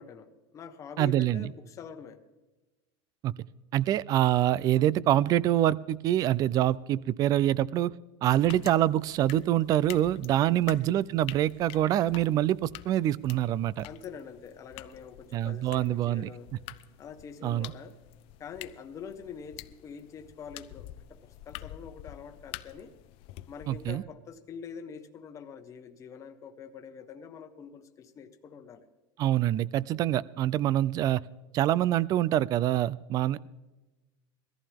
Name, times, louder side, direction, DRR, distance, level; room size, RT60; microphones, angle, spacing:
voice 1, 0.0-2.2 10.4-10.7 13.8-16.5 17.0-18.0 18.4-23.0 23.5-28.8, left 7 dB, 25° left, 6 dB, 1.1 m, -45 dB
voice 2, 1.0-1.5 3.2-3.3 3.7-7.9 8.2-13.9 15.3-16.3 17.4-17.7 23.7-24.0 29.2-31.2 31.5-33.5, right 13 dB, 30° right, 22 dB, 0.4 m, -25 dB
sound 1, 8.3-23.9, left 15 dB, 45° left, 0.6 m, -48 dB
22.0 x 14.5 x 3.5 m, 1.1 s
supercardioid pair, 155°, 13 cm